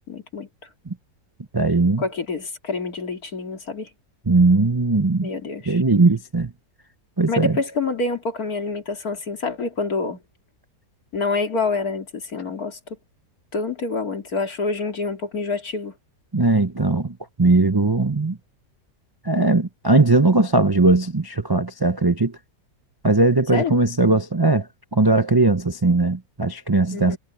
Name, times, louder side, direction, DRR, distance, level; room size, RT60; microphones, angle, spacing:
voice 1, 0.1-0.5 2.0-3.9 5.2-5.8 7.3-10.2 11.1-12.8 13.5-15.9 23.5-23.7 26.9-27.2, left 3 dB, 60° left, 3.0 m, -27 dB
voice 2, 1.5-2.0 4.3-5.3 5.7-6.5 7.2-7.5 16.3-17.1 17.4-18.4 19.3-22.3 23.0-24.6 24.9-27.2, right 3 dB, 35° right, 0.3 m, -19 dB
omnidirectional pair, 1.8 m